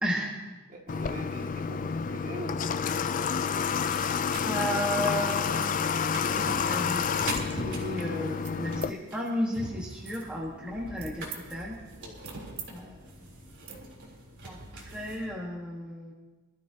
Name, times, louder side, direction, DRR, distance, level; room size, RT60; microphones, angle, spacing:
voice 1, 0.0-0.3 3.9-5.5 6.5-7.3 7.5-11.8 12.7-12.9 14.4-16.1, equal, 5° right, -4 dB, 1.4 m, -33 dB
voice 2, 0.7-2.9 12.0-12.2, right 1 dB, 35° right, -1 dB, 2.1 m, -42 dB
Water / Water tap faucet, 0.9-8.9, left 6 dB, 35° left, 0.4 m, -29 dB
sound 1, 4.2-15.2, right 2 dB, 55° right, 3.5 m, -42 dB
sound 2, 6.9-7.1 7.5-7.9 8.4-8.9 9.6-11.4 11.8-12.7 13.0-13.2 13.6-13.8, right 8 dB, 75° right, 1.6 m, -47 dB
23.0 x 13.0 x 2.8 m, 1.3 s
head